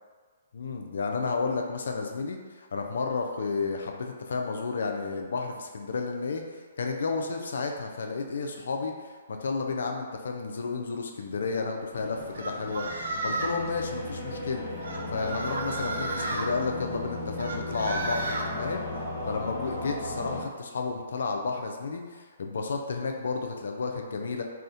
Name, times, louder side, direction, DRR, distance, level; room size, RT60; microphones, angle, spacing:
voice 1, 0.5-6.4 6.8-14.6 15.1-18.9 19.3-24.4, left 4 dB, 75° left, 3 dB, 0.3 m, -32 dB
sound 1, 11.9-20.4, left 1 dB, 35° left, 1.0 m, -36 dB
sound 2, 12.4-13.6 14.8-16.5 17.4-18.5, right 2 dB, 80° right, 0.4 m, -33 dB
2.3 x 2.1 x 2.6 m, 1.5 s
hypercardioid pair, 145°, 0 cm